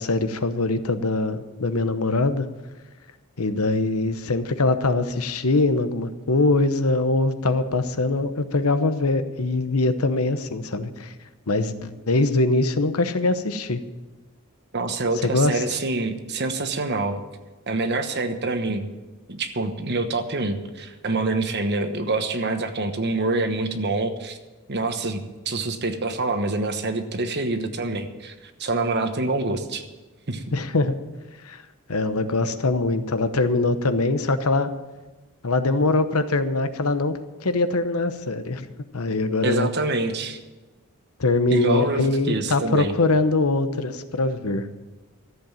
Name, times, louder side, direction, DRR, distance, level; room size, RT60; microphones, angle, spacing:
voice 1, 0.0-2.5 3.4-11.1 11.5-13.8 15.2-15.6 30.5-30.9 31.4-31.6 31.9-34.7 35.4-38.7 38.9-39.7 41.2-44.7, left 2 dB, 85° left, 10 dB, 1.0 m, -22 dB
voice 2, 14.7-17.2 17.7-18.9 19.3-24.4 24.7-29.8 30.3-30.4 39.4-40.4 41.5-42.9, right 2 dB, 50° right, 8 dB, 1.2 m, -26 dB
14.0 x 7.8 x 8.8 m, 1.2 s
head